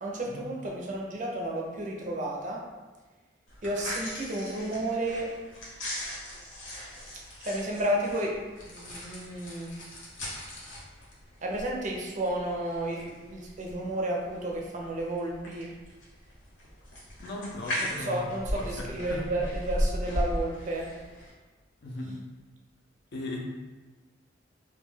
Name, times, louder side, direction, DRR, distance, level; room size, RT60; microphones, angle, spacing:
voice 1, 0.0-2.6 3.6-5.3 7.4-8.3 8.6-9.7 11.4-15.7 17.8-20.9, right 1 dB, 45° right, -1 dB, 0.5 m, -32 dB
sound 1, 3.5-21.3, equal, 85° left, 0.8 m, -37 dB
voice 2, 17.2-18.3 18.5-19.3 21.8-22.2 23.1-23.4, left 2 dB, 60° left, -1 dB, 0.5 m, -37 dB
2.2 x 2.2 x 3.2 m, 1.2 s
head